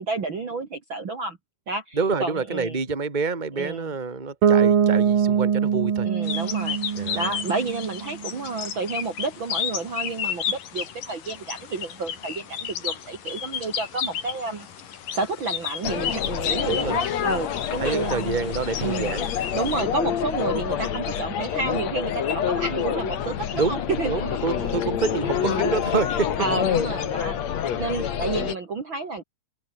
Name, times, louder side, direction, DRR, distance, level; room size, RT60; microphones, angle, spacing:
voice 1, 0.0-1.4 1.7-2.8 3.5-3.9 6.0-6.8 7.1-14.7 15.1-18.4 18.8-19.1 19.5-24.7 25.4-25.7 26.4-29.2, right 3 dB, 40° right, 2.6 m, -30 dB
voice 2, 1.9-6.1 6.9-7.3 16.7-17.0 17.8-19.3 23.5-26.3, right 4 dB, 15° right, 2.6 m, -27 dB
Bass guitar, 4.4-8.3, right 7 dB, 80° right, 4.7 m, -22 dB
sound 1, 6.2-19.8, left 8 dB, 75° left, 4.1 m, -33 dB
sound 2, 15.8-28.5, left 9 dB, 55° left, 2.8 m, -27 dB
open air
omnidirectional pair, 3.9 m